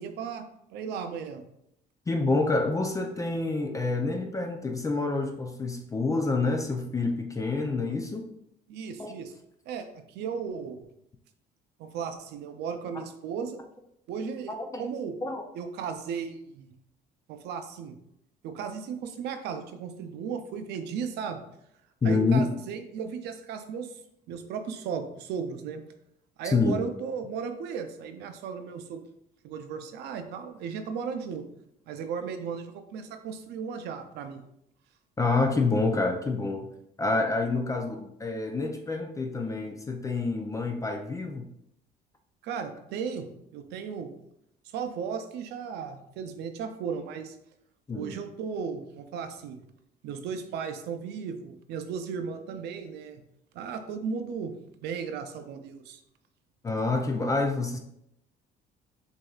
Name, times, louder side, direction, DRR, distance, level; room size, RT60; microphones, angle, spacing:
voice 1, 0.0-1.4 8.7-9.3 9.7-10.9 11.8-13.6 14.1-15.2 15.5-16.7 17.3-18.0 18.4-21.4 22.0-24.0 24.3-25.8 26.4-29.0 29.4-31.5 31.9-34.4 42.4-43.3 43.5-44.1 44.7-47.4 47.9-49.6 50.0-53.2 53.5-56.0, right 6 dB, 80° right, 7 dB, 0.5 m, -35 dB
voice 2, 2.1-8.3 9.0-9.1 14.5-14.8 15.2-15.4 22.0-22.4 26.4-26.8 35.2-36.7 37.0-41.5 47.9-48.2 56.6-57.8, left 3 dB, 20° left, 4 dB, 0.4 m, -27 dB
6.2 x 2.7 x 2.4 m, 0.78 s
cardioid pair, 110°, 17 cm